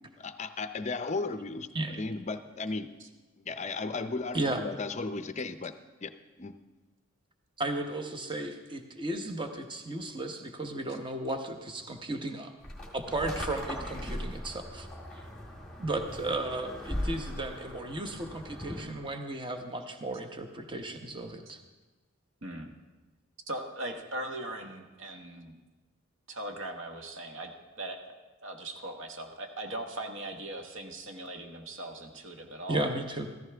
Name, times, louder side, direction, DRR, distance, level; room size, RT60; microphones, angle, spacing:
voice 1, 0.2-1.7 2.0-2.9 3.5-5.7 6.0-6.1 6.4-6.5, left 3 dB, 30° left, 11 dB, 0.5 m, -35 dB
voice 2, 7.6-12.5 12.9-14.9 15.1-15.2 15.8-21.6 32.7-33.3, right 2 dB, 20° right, 6 dB, 0.9 m, -34 dB
sound 1, 12.6-19.0, equal, 5° left, 1.9 m, -39 dB
voice 3, 23.5-25.6 26.3-27.5 27.8-28.1 28.4-32.9, right 1 dB, 60° right, 4 dB, 1.3 m, -39 dB
14.5 x 14.5 x 3.4 m, 1.2 s
head